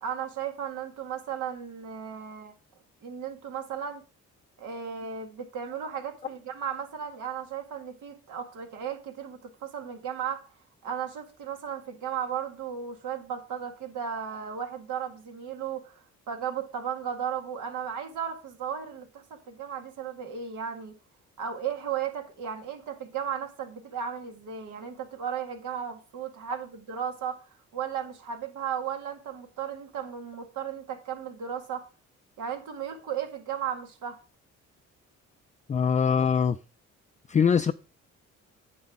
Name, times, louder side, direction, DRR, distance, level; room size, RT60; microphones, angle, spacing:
voice 1, 0.0-2.5 3.0-4.0 4.6-10.4 10.8-21.0 21.4-31.8 32.4-34.2, right 8 dB, 80° right, 2.0 m, -35 dB
voice 2, 35.7-36.6 37.3-37.7, left 6 dB, 25° left, 0.4 m, -22 dB
9.5 x 7.8 x 3.6 m
cardioid pair, 90°, 30 cm